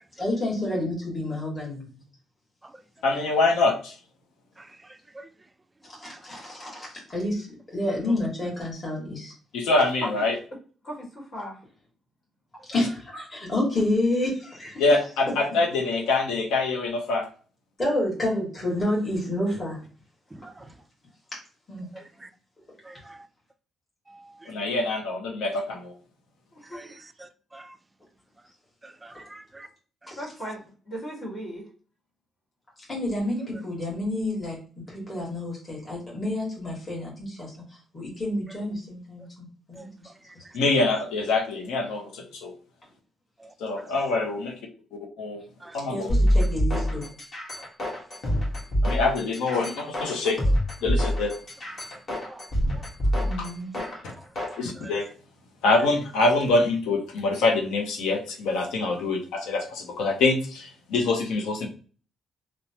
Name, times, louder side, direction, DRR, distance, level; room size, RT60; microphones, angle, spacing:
voice 1, 0.2-1.8 6.0-9.3 12.7-14.8 17.8-19.8 21.7-21.9 30.1-30.2 32.9-34.6 34.9-37.5 37.9-40.1 45.9-47.1 53.2-53.7, left 1 dB, 30° left, 1.4 m, -29 dB
voice 2, 3.0-3.9 9.5-10.3 14.8-17.3 24.5-25.9 40.5-42.5 43.6-44.5 45.2-45.4 45.7-46.1 48.8-50.4 50.8-51.4 53.4-53.5 54.6-55.1 55.6-61.7, left 3 dB, 90° left, 0.6 m, -25 dB
voice 3, 4.6-5.3 6.0-6.2 20.3-20.7 21.9-22.3 22.8-23.2 24.1-24.5 26.7-27.8 28.8-29.7 30.0-30.1 39.7-39.9 43.4-43.9 45.6-45.8 47.8-47.9 52.2-52.4 52.7-52.8 53.2-53.3 54.8-54.9, right 2 dB, 15° right, 0.3 m, -47 dB
voice 4, 10.8-11.6 26.5-26.9 30.1-31.6, equal, 60° left, 1.5 m, -37 dB
sound 1, 46.1-54.6, equal, 45° left, 1.2 m, -25 dB
3.0 x 2.0 x 2.7 m
cardioid pair, 90°, 0 cm